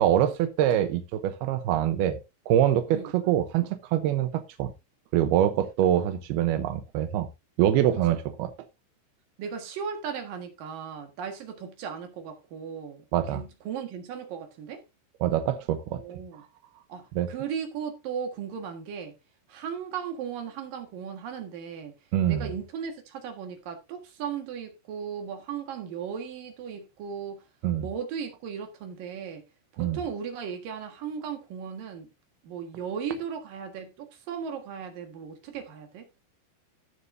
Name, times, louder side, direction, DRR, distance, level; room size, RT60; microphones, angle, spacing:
voice 1, 0.0-2.2 2.5-4.7 5.1-7.3 7.6-8.5 13.1-13.4 15.2-16.0 17.2-17.3 22.1-22.5 27.6-27.9 29.8-30.0, right 11 dB, 80° right, 2.2 m, -24 dB
voice 2, 9.4-14.8 16.0-16.4 16.9-19.2 19.5-21.9 22.3-27.4 27.8-29.4 29.7-32.1 32.4-36.2, right 7 dB, 60° right, 2.7 m, -36 dB
16.5 x 6.6 x 2.7 m
omnidirectional pair, 5.7 m